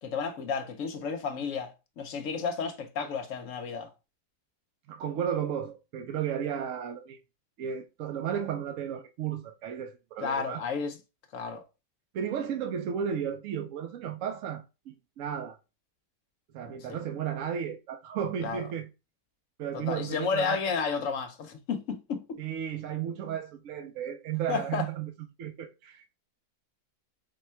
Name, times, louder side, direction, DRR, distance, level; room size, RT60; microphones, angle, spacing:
voice 1, 0.0-3.9 10.2-11.0 11.3-11.6 16.7-17.0 18.4-18.7 19.7-22.4 24.5-24.9, left 5 dB, 65° left, 0.9 m, -32 dB
voice 2, 4.9-7.2 7.6-10.6 12.1-15.6 16.5-18.9 19.6-20.6 22.4-25.1 25.4-26.2, right 8 dB, 70° right, 0.9 m, -34 dB
4.3 x 2.2 x 4.2 m
omnidirectional pair, 1.6 m